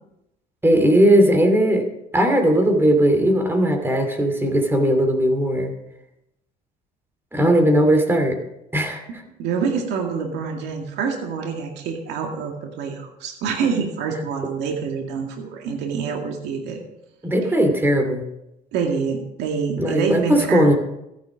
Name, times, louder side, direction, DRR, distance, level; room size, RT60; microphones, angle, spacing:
voice 1, 0.6-1.8 2.1-5.7 7.3-8.4 8.7-9.2 17.2-18.3 19.8-20.7, right 1 dB, 15° right, 5 dB, 2.8 m, -18 dB
voice 2, 9.4-16.8 18.7-20.7, right 5 dB, 90° right, 2 dB, 2.1 m, -26 dB
14.5 x 10.5 x 5.1 m, 0.85 s
cardioid pair, 110°, 17 cm